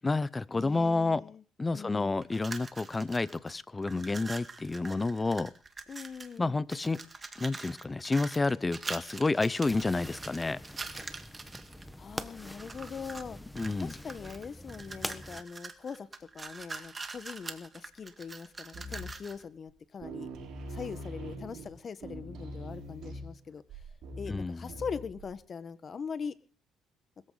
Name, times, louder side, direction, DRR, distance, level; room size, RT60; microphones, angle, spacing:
voice 1, 0.0-1.2 1.6-5.5 6.4-7.0 7.4-10.6 13.6-13.9 24.3-24.6, left 3 dB, 20° left, 19 dB, 0.8 m, -30 dB
voice 2, 0.5-1.4 1.7-2.2 5.9-6.6 12.0-13.4 13.8-20.3 20.7-23.6 24.2-26.3, left 6 dB, 45° left, 13 dB, 1.4 m, -41 dB
sound 1, 2.2-3.5 3.8-6.4 6.7-11.8 12.4-13.3 13.6-19.4, right 3 dB, 30° right, 2.0 m, -44 dB
sound 2, 9.6-15.4, equal, 5° left, 1.4 m, -44 dB
sound 3, 18.7-19.3 19.7-19.8 20.0-25.4, equal, 70° right, 5.9 m, -43 dB
21.0 x 14.0 x 4.1 m, 0.40 s
cardioid pair, 85°, 0 cm